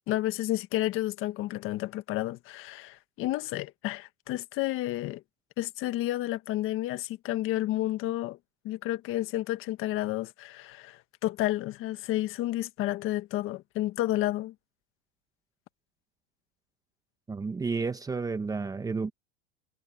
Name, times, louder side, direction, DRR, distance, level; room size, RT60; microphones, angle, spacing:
voice 1, 0.0-5.2 5.6-8.4 8.6-14.5, left 15 dB, 40° left, 1.5 m, -31 dB
voice 2, 17.3-19.1, right 4 dB, 10° right, 1.1 m, -31 dB
supercardioid pair, 145°, 33 cm